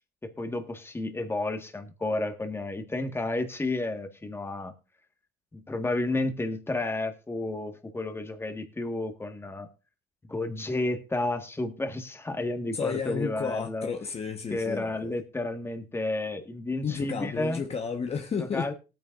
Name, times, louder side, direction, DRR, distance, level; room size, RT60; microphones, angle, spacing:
voice 1, 0.2-4.7 5.5-9.7 10.3-13.9 14.5-17.6 18.4-18.7, left 2 dB, 15° left, 6 dB, 1.6 m, -31 dB
voice 2, 12.7-15.1 16.8-18.7, left 6 dB, 35° left, 5 dB, 1.2 m, -32 dB
19.0 x 9.2 x 2.5 m, 0.31 s
cardioid pair, 110°, 17 cm